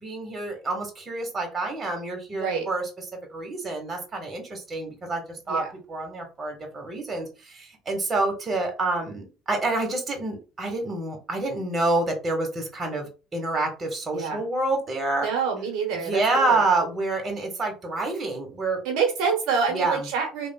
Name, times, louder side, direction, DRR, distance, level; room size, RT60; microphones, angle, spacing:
voice 1, 0.0-2.9 3.3-15.3 15.9-18.8 19.7-20.1, right 2 dB, 30° right, 3 dB, 1.1 m, -28 dB
voice 2, 2.3-2.7 5.5-5.7 14.1-14.4 15.2-16.6 18.8-20.5, right 6 dB, 70° right, 1 dB, 1.0 m, -27 dB
3.2 x 2.3 x 2.3 m, 0.32 s
supercardioid pair, 80°, 0 cm